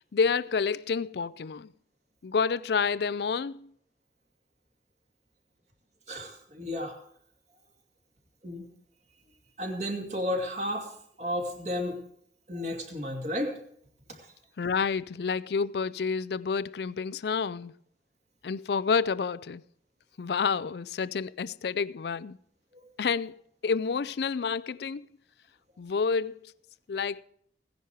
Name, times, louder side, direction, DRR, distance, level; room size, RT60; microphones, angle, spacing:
voice 1, 0.1-1.7 2.2-3.7 14.6-17.8 18.4-19.6 20.2-22.4 23.0-25.1 25.8-26.5 26.9-27.2, left 5 dB, 65° left, 0.4 m, -29 dB
voice 2, 6.1-6.9 8.4-8.7 9.6-10.9 11.2-12.0 12.5-13.5 22.7-22.8, left 1 dB, 40° right, 2.5 m, -32 dB
16.5 x 10.5 x 4.7 m
head